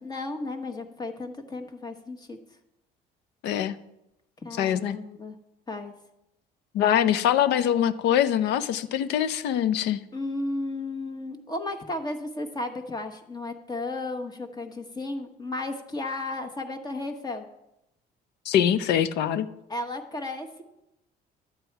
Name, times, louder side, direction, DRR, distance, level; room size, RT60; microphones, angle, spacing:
voice 1, 0.0-2.4 4.4-5.4 5.7-5.9 10.1-17.5 19.7-20.6, left 2 dB, 25° left, 6 dB, 1.1 m, -34 dB
voice 2, 3.4-3.7 4.6-5.0 6.7-10.0 18.5-19.5, left 10 dB, 85° left, 14 dB, 0.6 m, -23 dB
11.5 x 8.0 x 4.6 m, 0.88 s
cardioid pair, 110°, 17 cm